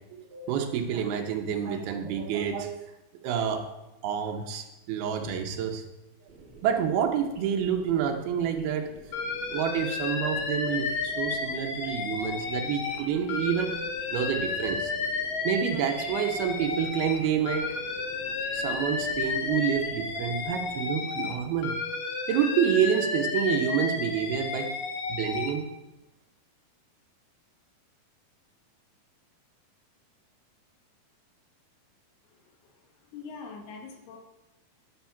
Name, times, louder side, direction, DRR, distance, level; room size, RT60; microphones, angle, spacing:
voice 1, 0.0-2.8 3.2-3.7 4.0-5.9 6.6-9.0 9.5-13.8 14.1-14.9 15.4-17.8 18.5-21.8 22.3-24.7 25.1-25.7, right 8 dB, 80° right, 4 dB, 3.0 m, -28 dB
sound 1, 6.3-21.0, right 3 dB, 40° right, 2.4 m, -49 dB
Alarm, 9.1-13.0 13.3-17.2 17.5-21.3 21.6-25.5, left 4 dB, 65° left, 3.0 m, -32 dB
voice 2, 32.2-34.2, left 5 dB, 85° left, 2 dB, 3.6 m, -45 dB
11.0 x 7.2 x 5.8 m, 1.0 s
omnidirectional pair, 4.4 m